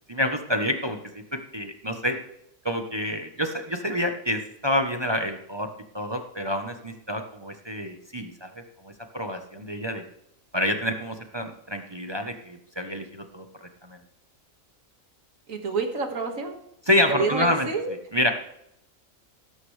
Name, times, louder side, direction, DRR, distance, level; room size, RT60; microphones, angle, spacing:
voice 1, 0.1-2.2 2.6-10.0 10.5-14.0 16.9-17.7 18.1-18.3, left 1 dB, 25° right, 5 dB, 0.8 m, -28 dB
voice 2, 15.5-16.6 17.1-17.9, right 4 dB, 80° right, 4 dB, 2.2 m, -28 dB
18.0 x 9.7 x 3.3 m, 0.78 s
omnidirectional pair, 1.4 m